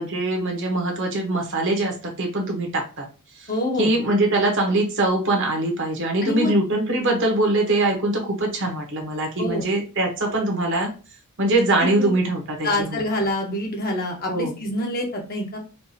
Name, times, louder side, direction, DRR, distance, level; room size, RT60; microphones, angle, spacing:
voice 1, 0.0-3.1 3.4-3.5 3.8-10.9 11.4-13.0 14.3-14.6, right 2 dB, 55° right, 1 dB, 1.1 m, -22 dB
voice 2, 3.5-3.9 6.2-6.5 9.4-9.6 11.8-12.1 12.6-15.6, left 1 dB, 40° left, 1 dB, 1.1 m, -26 dB
4.4 x 2.6 x 2.8 m, 0.35 s
head